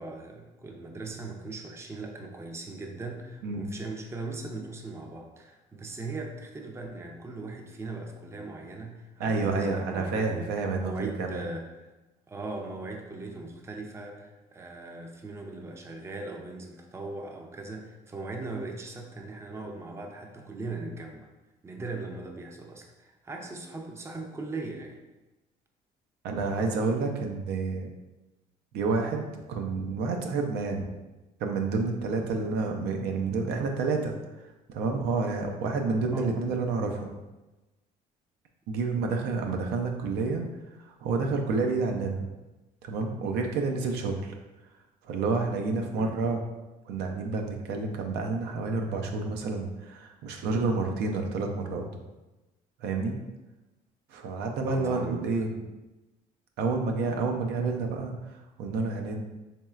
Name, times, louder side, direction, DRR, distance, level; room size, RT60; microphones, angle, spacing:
voice 1, 0.0-11.7 12.3-21.3 21.6-25.0 36.1-36.3 39.4-39.6 45.9-46.2 54.7-55.2, right 3 dB, 15° right, 2 dB, 0.4 m, -39 dB
voice 2, 9.2-11.4 26.2-27.9 28.7-30.9 31.4-34.2 34.7-37.1 38.7-40.5 40.8-42.3 42.8-44.3 45.0-46.4 46.9-51.8 52.8-53.2 54.1-55.6 56.6-59.2, right 4 dB, 80° right, 3 dB, 0.5 m, -29 dB
4.3 x 3.1 x 2.3 m, 1.1 s
cardioid pair, 110°, 17 cm